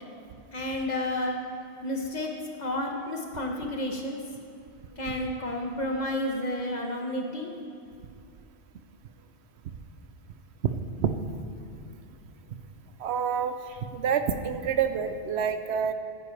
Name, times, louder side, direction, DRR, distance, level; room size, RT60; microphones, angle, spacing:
voice 1, 0.5-1.4 1.8-2.3 2.6-4.2 5.0-7.5, left 1 dB, 40° left, 1 dB, 1.1 m, -31 dB
voice 2, 13.0-15.9, right 7 dB, 75° right, 9 dB, 0.8 m, -27 dB
14.5 x 9.2 x 3.3 m, 2.5 s
omnidirectional pair, 1.2 m